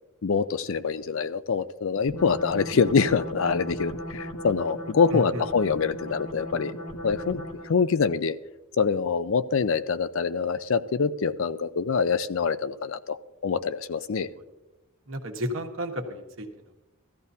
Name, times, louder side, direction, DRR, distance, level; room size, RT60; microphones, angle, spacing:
voice 1, 0.2-6.7 7.0-8.4 8.8-13.2 13.4-14.3, left 5 dB, 65° left, 14 dB, 0.5 m, -25 dB
sound 1, 2.1-7.8, equal, 85° left, 1.9 m, -37 dB
voice 2, 5.1-5.4 14.3-14.4 15.1-16.7, equal, 65° right, 3 dB, 1.4 m, -33 dB
17.0 x 13.5 x 2.7 m, 1.0 s
head